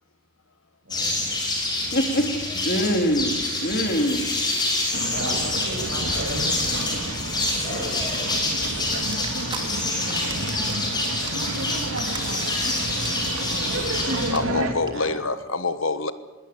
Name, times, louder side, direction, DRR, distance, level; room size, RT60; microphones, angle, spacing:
voice 1, 0.8-1.3 5.1-6.7 7.6-8.0 14.9-15.2, right 1 dB, 65° right, 7.6 m, -35 dB
sound 1, 0.9-14.3, left 2 dB, 20° left, 5.6 m, -27 dB
voice 2, 1.9-2.4 2.6-4.3, equal, 50° left, 3.2 m, -23 dB
sound 2, 4.9-14.7, right 2 dB, 85° right, 2.8 m, -31 dB
sound 3, 9.1-9.6 9.9-10.8 11.1-12.7 13.0-13.3 13.6-13.7 13.9-14.0 14.3-14.4 14.8-14.9, right 5 dB, 25° right, 2.7 m, -36 dB
voice 3, 14.3-16.1, left 3 dB, 75° left, 1.4 m, -26 dB
21.0 x 18.5 x 8.7 m
head